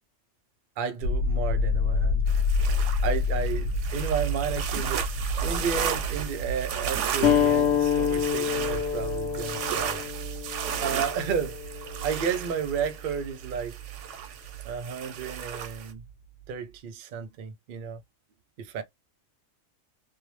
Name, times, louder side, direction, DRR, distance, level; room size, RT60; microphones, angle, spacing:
voice 1, 0.8-2.3 3.0-10.0 10.8-11.6 12.0-13.8 14.6-16.0 16.5-18.0 18.6-18.8, right 6 dB, 85° right, 0.4 m, -32 dB
sound 1, 1.0-14.8 15.2-16.1, left 2 dB, 80° left, 1.1 m, -30 dB
sound 2, 2.3-15.9, right 8 dB, 70° right, 0.8 m, -35 dB
sound 3, 7.2-12.4, left 9 dB, 65° left, 0.7 m, -27 dB
2.6 x 2.0 x 3.0 m
omnidirectional pair, 1.5 m